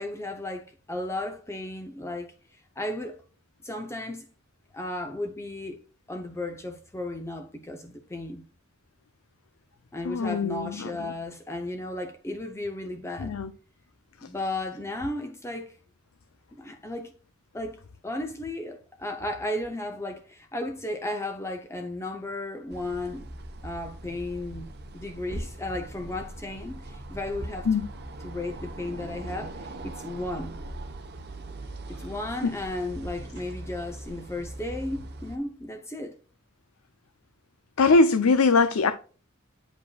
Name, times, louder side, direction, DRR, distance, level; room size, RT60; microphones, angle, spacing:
voice 1, 0.0-2.3 2.8-3.2 3.6-4.3 4.7-5.8 6.1-8.4 9.9-13.3 14.2-15.8 16.5-17.1 17.5-23.3 23.6-24.7 24.9-27.7 28.2-30.5 31.9-36.2, left 1 dB, 15° left, 0.6 m, -34 dB
voice 2, 10.0-11.1 13.2-13.5 27.7-27.9 32.4-32.5 37.8-38.9, left 3 dB, 85° left, 0.5 m, -22 dB
sound 1, 22.7-35.4, right 1 dB, 50° right, 0.9 m, -40 dB
8.3 x 5.1 x 2.3 m
head